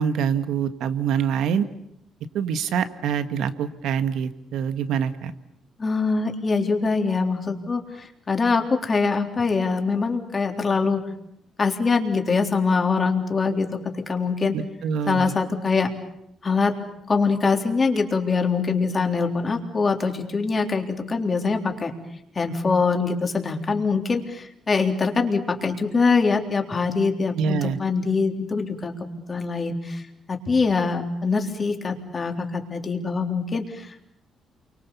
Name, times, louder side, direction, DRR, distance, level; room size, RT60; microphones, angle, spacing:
voice 1, 0.0-1.6 2.3-5.3 14.5-15.3 27.3-27.8, right 7 dB, 80° right, 10 dB, 1.7 m, -25 dB
voice 2, 5.8-11.0 11.6-14.6 15.1-15.9 16.4-16.8 17.1-21.9 22.4-30.0 30.3-34.0, left 4 dB, 35° left, 4 dB, 3.6 m, -23 dB
29.0 x 24.5 x 7.2 m, 0.75 s
cardioid pair, 90°, 0 cm